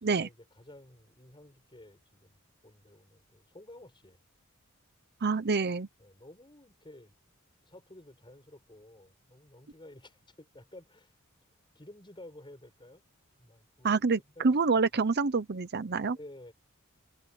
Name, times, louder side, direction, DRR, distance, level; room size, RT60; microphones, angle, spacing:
voice 1, 0.0-4.2 6.0-7.2 7.6-11.1 11.7-13.0 13.4-13.9 14.3-14.6 16.1-16.5, left 1 dB, 20° left, 7.6 m, -52 dB
voice 2, 5.2-5.9 13.8-16.2, right 4 dB, 50° right, 0.7 m, -27 dB
open air
head